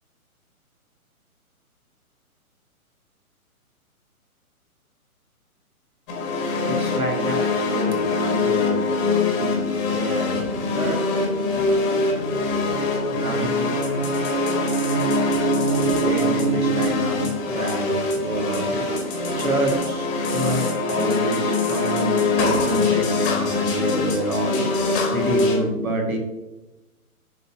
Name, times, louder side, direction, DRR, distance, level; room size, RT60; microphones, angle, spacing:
sound 1, 6.1-25.6, left 2 dB, 20° left, 1.3 m, -23 dB
voice 1, 6.6-9.6 9.9-11.0 13.1-13.8 15.1-15.4 15.8-17.2 17.4-18.8 19.4-26.2, right 1 dB, 70° right, 2 dB, 1.7 m, -28 dB
11.0 x 4.1 x 2.6 m, 0.98 s
figure-of-eight pair, 130°, 44 cm